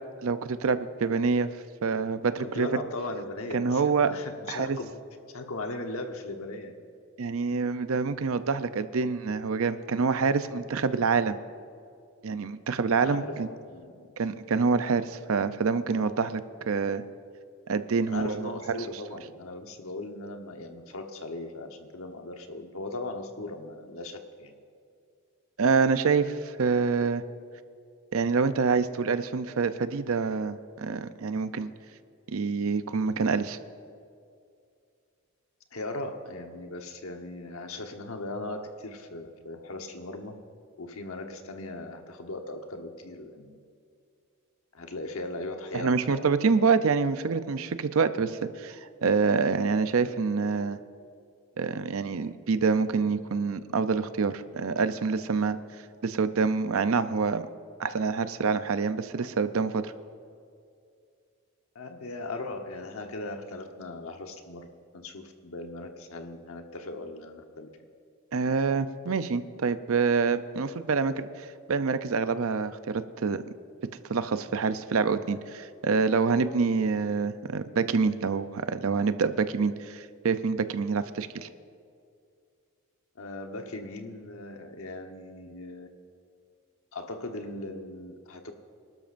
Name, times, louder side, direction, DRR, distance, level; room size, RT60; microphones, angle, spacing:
voice 1, 0.2-1.5 1.8-2.7 3.5-4.1 4.5-4.8 7.2-11.4 12.2-13.5 14.2-17.0 17.7-18.9 25.6-27.2 28.1-31.7 32.3-33.6 45.7-50.8 51.6-55.6 56.0-57.4 57.8-59.9 68.3-73.4 74.1-81.5, right 5 dB, 70° right, 12 dB, 0.5 m, -26 dB
voice 2, 2.4-4.9 5.3-6.8 13.0-14.1 18.1-24.5 35.7-40.4 40.8-43.6 44.7-46.3 61.7-64.7 64.9-67.7 83.1-85.9 86.9-88.5, left 2 dB, 75° left, 5 dB, 1.1 m, -38 dB
25.5 x 12.5 x 2.6 m, 2.3 s
head